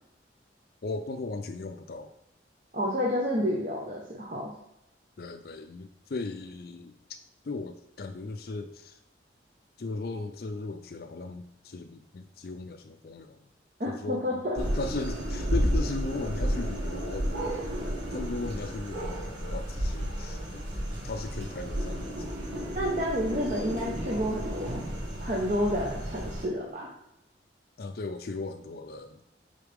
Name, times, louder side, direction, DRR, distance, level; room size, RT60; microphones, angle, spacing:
voice 1, 0.8-2.1 5.2-6.9 7.4-9.0 9.8-13.4 13.8-17.3 18.1-20.6 21.0-22.3 27.8-29.2, left 3 dB, 55° left, 7 dB, 0.4 m, -37 dB
voice 2, 2.7-4.5 13.8-14.6 22.7-24.8 25.2-26.9, equal, 40° right, -4 dB, 1.0 m, -30 dB
sound 1, 14.6-26.4, equal, 90° right, 1.7 m, -32 dB
8.1 x 4.0 x 3.5 m, 0.87 s
head